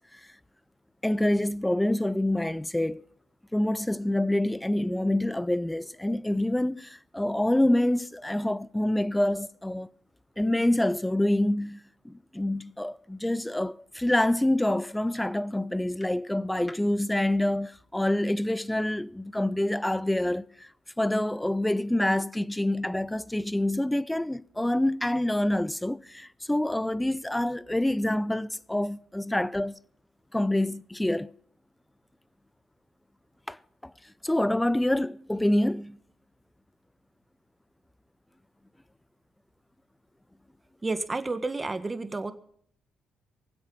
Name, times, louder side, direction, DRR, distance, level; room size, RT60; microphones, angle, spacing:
voice 1, 1.0-3.0 3.5-9.9 10.4-20.7 21.0-29.8 30.3-31.3 33.5-33.6 33.8-33.9 34.2-36.0, left 1 dB, 5° left, 0.5 m, -26 dB
voice 2, 40.8-42.3, right 3 dB, 20° right, 1.5 m, -30 dB
24.0 x 8.0 x 5.4 m
cardioid pair, 90°, 0 cm